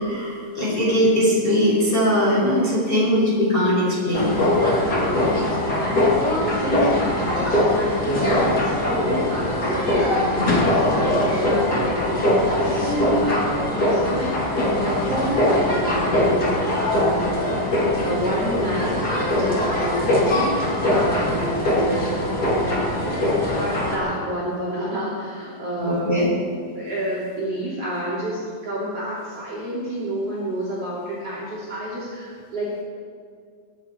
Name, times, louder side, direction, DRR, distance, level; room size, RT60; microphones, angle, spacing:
voice 1, 0.0-4.4 10.4-10.5 21.0-21.2 25.8-26.3, equal, 10° left, -6 dB, 4.3 m, -20 dB
sound 1, 4.1-24.0, left 1 dB, 35° left, 1.7 m, -22 dB
voice 2, 5.0-17.7 18.0-26.2 26.7-32.8, right 1 dB, 35° right, -7 dB, 3.3 m, -29 dB
22.0 x 11.0 x 4.6 m, 2.1 s
omnidirectional pair, 5.6 m